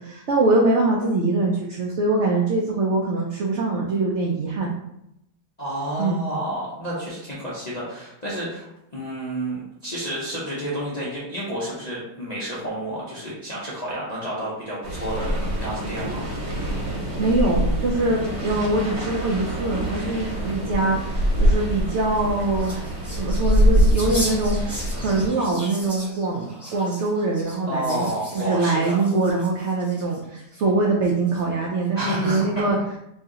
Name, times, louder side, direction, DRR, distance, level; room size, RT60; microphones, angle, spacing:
voice 1, 0.0-4.7 6.0-6.2 17.2-32.8, right 2 dB, 80° right, -2 dB, 0.6 m, -23 dB
voice 2, 5.6-16.3 27.7-28.9 31.9-32.6, right 1 dB, 45° left, -8 dB, 0.5 m, -30 dB
sound 1, 14.8-25.3, equal, 60° right, 1.4 m, -24 dB
sound 2, 22.0-30.4 31.0-31.6, equal, ahead, 0.8 m, -37 dB
3.1 x 2.8 x 3.6 m, 0.82 s
omnidirectional pair, 1.8 m